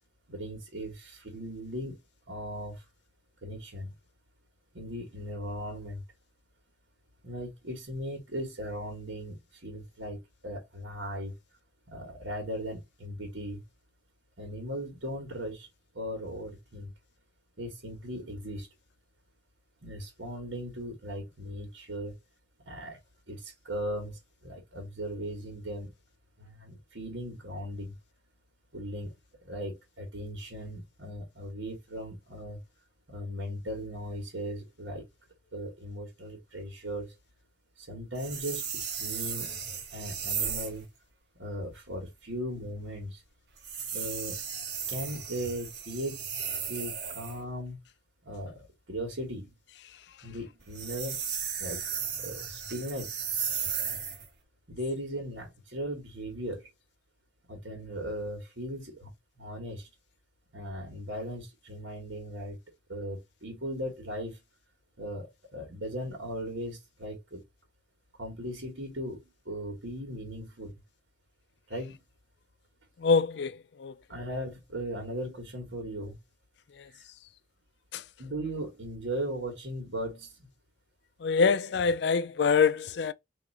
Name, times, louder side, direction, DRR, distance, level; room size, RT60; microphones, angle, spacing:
voice 1, 0.3-2.0 2.3-2.8 3.4-3.9 4.7-6.0 7.2-11.3 11.9-13.6 14.4-15.7 15.9-16.9 17.6-18.7 19.8-22.1 22.6-23.0 23.3-25.9 26.4-27.9 28.7-29.1 29.4-32.6 33.1-35.0 35.5-37.1 37.8-40.9 41.3-43.2 43.9-44.4 44.9-46.3 46.7-47.8 48.2-49.5 50.2-51.3 51.6-51.8 52.2-53.2 54.7-56.7 57.5-59.1 59.4-59.9 60.5-62.6 62.9-64.4 65.0-67.4 68.2-70.7 71.7-72.0 74.1-76.2 76.9-77.0 78.2-80.5, equal, 85° right, 1.7 m, -38 dB
sound 1, 38.2-40.8 43.6-47.4 50.6-54.3, right 7 dB, 65° right, 1.3 m, -35 dB
voice 2, 73.0-73.9 77.9-78.0 81.2-83.1, left 5 dB, 65° left, 0.4 m, -25 dB
3.8 x 2.9 x 4.2 m
head